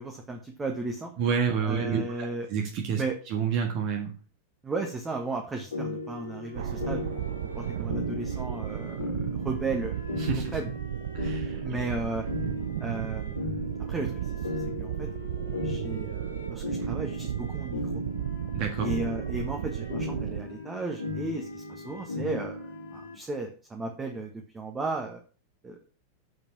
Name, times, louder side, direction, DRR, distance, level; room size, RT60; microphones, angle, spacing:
voice 1, 0.0-1.1 1.6-2.5 3.0-3.1 4.6-9.2 9.4-9.9 10.5-10.7 11.6-12.2 12.8-14.3 14.8-15.1 15.6-17.9 18.8-22.6 22.9-25.2 25.6-25.9, right 3 dB, 15° right, 3 dB, 1.4 m, -35 dB
voice 2, 1.2-4.1 10.2-10.5 11.1-11.6 18.5-18.9, right 6 dB, 40° right, 3 dB, 1.5 m, -29 dB
sound 1, 5.7-23.2, left 2 dB, 70° left, 2.1 m, -37 dB
sound 2, 6.5-20.4, right 11 dB, 55° right, 0.8 m, -34 dB
7.9 x 5.4 x 6.0 m, 0.38 s
figure-of-eight pair, 90°, 0 cm